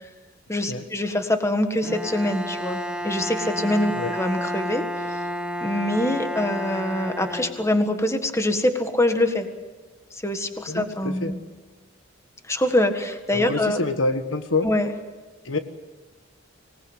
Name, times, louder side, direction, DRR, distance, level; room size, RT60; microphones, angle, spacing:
voice 1, 0.5-4.8 5.1-5.2 5.6-9.5 10.1-11.4 12.5-13.8 14.6-14.9, left 1 dB, 15° left, 7 dB, 1.6 m, -24 dB
Bowed string instrument, 1.8-8.0, equal, 5° right, 1.1 m, -31 dB
voice 2, 10.7-11.3 13.3-14.7 15.4-15.6, left 3 dB, 80° left, 8 dB, 1.5 m, -26 dB
25.0 x 18.5 x 8.2 m, 1.2 s
head